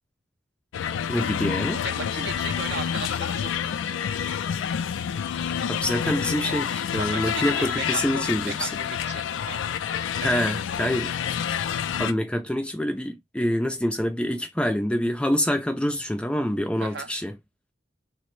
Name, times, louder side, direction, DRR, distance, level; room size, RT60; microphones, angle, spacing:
sound 1, 0.7-12.1, left 8 dB, 90° left, 0.3 m, -28 dB
voice 1, 1.1-1.8 5.7-8.7 10.2-11.1 12.0-17.3, equal, 5° left, 0.3 m, -26 dB
voice 2, 1.8-4.1 7.0-9.8 10.2-10.9 16.8-17.1, right 4 dB, 65° right, 0.6 m, -37 dB
3.2 x 2.1 x 3.0 m
head